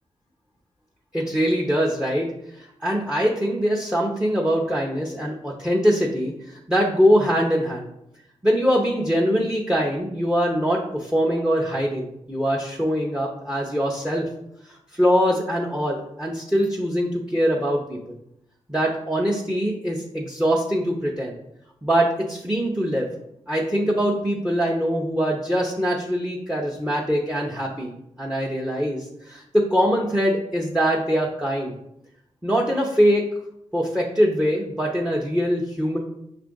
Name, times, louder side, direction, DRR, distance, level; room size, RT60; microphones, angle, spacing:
voice 1, 1.1-2.3 2.6-7.9 8.4-14.3 14.6-18.2 18.7-21.3 21.8-23.1 23.5-27.9 28.2-31.7 32.4-33.3 33.7-36.0, equal, 5° right, 0 dB, 0.7 m, -23 dB
5.3 x 2.4 x 3.7 m, 0.79 s
cardioid pair, 50°, 13 cm